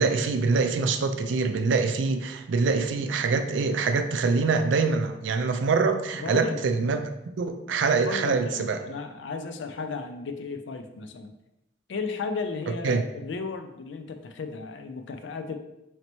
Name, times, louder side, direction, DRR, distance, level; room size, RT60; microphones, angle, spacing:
voice 1, 0.0-7.0 7.4-8.8 12.8-13.0, right 4 dB, 75° right, 8 dB, 0.4 m, -24 dB
voice 2, 6.2-6.6 8.0-11.3 11.9-15.5, left 4 dB, 70° left, 8 dB, 0.4 m, -34 dB
4.0 x 3.2 x 3.0 m, 0.87 s
head